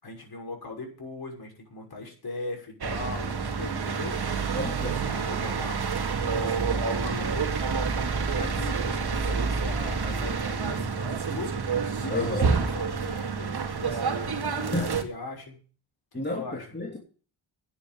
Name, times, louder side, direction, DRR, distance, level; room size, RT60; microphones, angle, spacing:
voice 1, 0.0-4.2 4.5-5.8 6.2-7.8 8.3-11.5 12.0-15.6 16.1-16.7, left 2 dB, 50° left, 6.1 m, -39 dB
sound 1, 2.8-15.0, right 5 dB, 50° right, 2.1 m, -28 dB
voice 2, 4.5-5.2 12.1-12.5 14.7-15.0 16.1-17.0, left 1 dB, 20° left, 3.0 m, -31 dB
10.5 x 8.2 x 9.1 m
cardioid pair, 60°, 48 cm